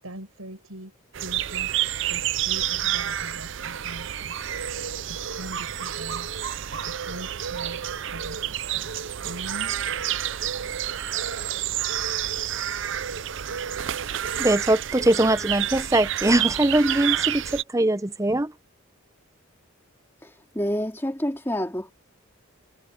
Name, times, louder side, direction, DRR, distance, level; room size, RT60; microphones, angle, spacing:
voice 1, 0.0-0.9 1.2-4.4 5.1-6.3 6.7-8.9 9.2-9.9, right 1 dB, 80° right, 7.6 m, -42 dB
sound 1, 1.1-17.6, right 10 dB, 55° right, 0.5 m, -29 dB
voice 2, 14.4-18.5, right 1 dB, 15° right, 0.7 m, -22 dB
voice 3, 20.2-21.9, equal, 10° left, 2.5 m, -28 dB
head